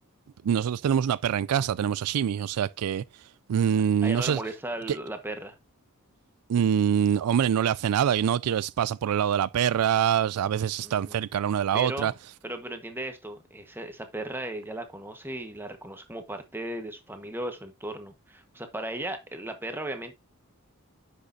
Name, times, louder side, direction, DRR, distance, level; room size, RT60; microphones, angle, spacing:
voice 1, 0.4-3.0 3.5-4.4 6.5-12.1, right 8 dB, 85° right, 0.4 m, -25 dB
voice 2, 4.0-5.5 10.8-11.2 11.7-12.2 12.4-20.2, right 1 dB, 10° right, 1.3 m, -36 dB
9.8 x 6.4 x 2.7 m
head